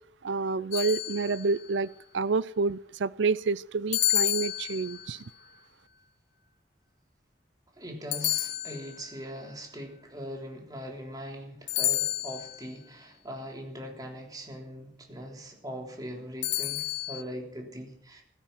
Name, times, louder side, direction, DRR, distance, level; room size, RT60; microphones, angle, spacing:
voice 1, 0.2-5.2, right 4 dB, 80° right, 19 dB, 0.5 m, -28 dB
sound 1, 0.7-1.6 3.9-5.2 8.1-9.2 11.7-12.6 16.4-17.2, left 14 dB, 70° left, 1.4 m, -30 dB
voice 2, 7.8-18.2, equal, 20° right, 1 dB, 3.4 m, -41 dB
16.5 x 13.5 x 5.9 m, 0.66 s
head